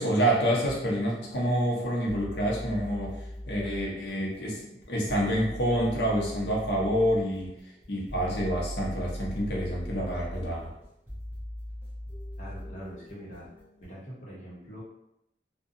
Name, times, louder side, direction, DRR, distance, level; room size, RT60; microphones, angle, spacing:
voice 1, 0.0-3.2 3.5-7.5 7.9-10.6, equal, 75° left, -3 dB, 0.7 m, -27 dB
sound 1, 0.6-13.9, equal, 10° right, 0.7 m, -40 dB
voice 2, 12.4-13.5 13.8-14.8, equal, 40° left, -6 dB, 0.9 m, -43 dB
2.7 x 2.2 x 2.5 m, 0.82 s
head